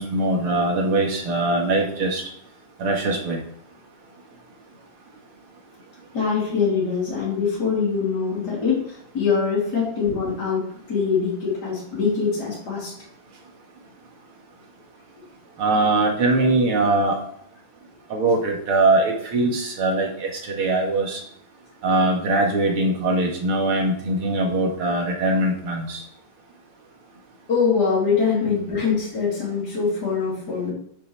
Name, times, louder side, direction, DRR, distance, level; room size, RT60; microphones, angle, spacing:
voice 1, 0.0-2.2 2.8-3.4 15.6-17.2 18.1-21.2 21.8-26.0, right 2 dB, 90° right, 1 dB, 2.8 m, -21 dB
voice 2, 6.1-12.9 27.5-30.7, left 5 dB, 45° left, -7 dB, 4.1 m, -23 dB
8.9 x 6.5 x 5.7 m, 0.66 s
omnidirectional pair, 2.3 m